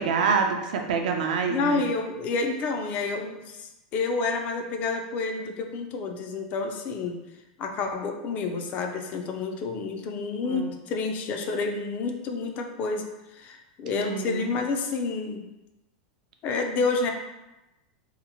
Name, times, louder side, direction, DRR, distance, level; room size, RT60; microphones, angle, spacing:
voice 1, 0.0-1.8 10.5-10.7 13.9-14.5, right 5 dB, 75° right, 3 dB, 0.4 m, -26 dB
voice 2, 1.5-7.2 7.6-15.4 16.4-17.1, left 4 dB, 40° left, 4 dB, 0.3 m, -29 dB
2.8 x 2.0 x 2.7 m, 0.99 s
supercardioid pair, 125°, 4 cm